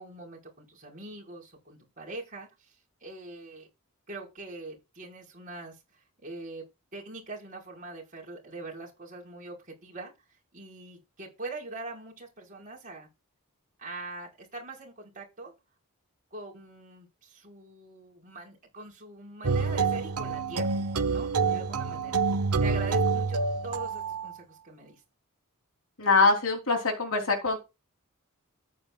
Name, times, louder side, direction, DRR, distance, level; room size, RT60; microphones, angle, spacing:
voice 1, 0.0-2.8 3.0-3.7 4.1-6.6 6.9-10.1 10.5-13.1 13.8-15.5 16.3-20.8 21.1-22.2 22.6-25.0, right 2 dB, 35° right, 5.3 m, -42 dB
sound 1, 19.4-24.3, right 4 dB, 90° right, 1.0 m, -27 dB
voice 2, 26.0-27.6, left 3 dB, 70° left, 3.6 m, -23 dB
14.0 x 9.4 x 2.4 m
head